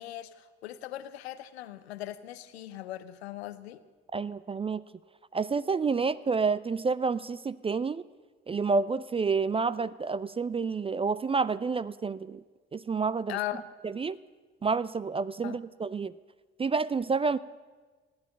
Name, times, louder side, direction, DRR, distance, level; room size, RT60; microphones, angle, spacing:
voice 1, 0.0-3.8 13.3-13.6 15.4-15.6, left 13 dB, 80° left, 14 dB, 0.7 m, -39 dB
voice 2, 4.1-4.8 5.3-8.0 8.5-12.4 12.7-13.4 13.8-14.2 14.6-16.1 16.6-17.4, right 4 dB, 20° right, 17 dB, 0.4 m, -29 dB
15.0 x 10.5 x 7.4 m, 1.4 s
figure-of-eight pair, 40°, 31 cm